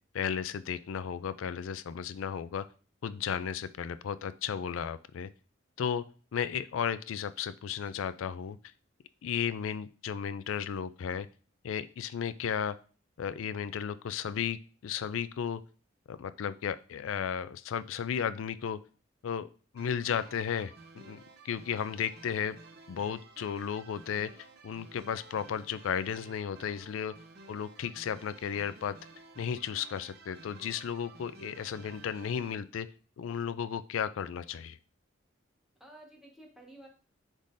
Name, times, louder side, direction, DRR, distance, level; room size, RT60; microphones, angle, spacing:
voice 1, 0.1-2.6 3.0-5.3 5.8-6.0 6.3-8.6 9.2-11.3 11.6-12.8 13.2-15.6 16.1-18.8 19.2-19.5 19.7-22.6 22.9-24.3 24.6-27.1 27.5-28.9 29.4-32.9 33.2-34.8, left 8 dB, 85° left, 14 dB, 0.4 m, -34 dB
sound 1, 19.8-32.5, right 3 dB, 55° right, 0.9 m, -53 dB
voice 2, 35.8-36.9, right 1 dB, 5° right, -1 dB, 1.3 m, -53 dB
10.0 x 3.7 x 2.6 m, 0.38 s
head